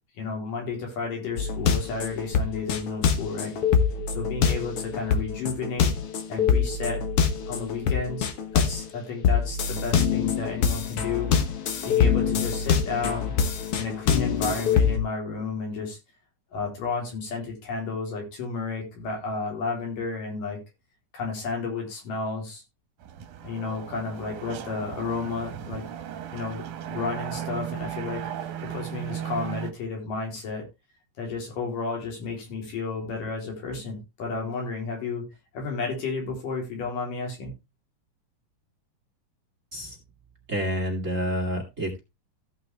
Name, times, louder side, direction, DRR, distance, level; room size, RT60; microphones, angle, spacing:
voice 1, 0.2-3.5 4.1-5.9 6.3-7.0 7.5-11.3 11.9-13.3 13.8-16.0 16.5-20.6 21.1-22.6 23.4-26.0 26.3-30.6 31.2-35.2 35.5-37.5, left 4 dB, 80° left, 0 dB, 5.2 m, -32 dB
sound 1, 1.4-8.9 9.2-15.0, left 7 dB, 55° left, 1.8 m, -25 dB
sound 2, 23.0-29.7, right 10 dB, 75° right, 2.5 m, -36 dB
voice 2, 40.5-42.0, equal, 25° right, 2 dB, 2.2 m, -28 dB
15.5 x 5.8 x 3.4 m, 0.25 s
omnidirectional pair, 3.7 m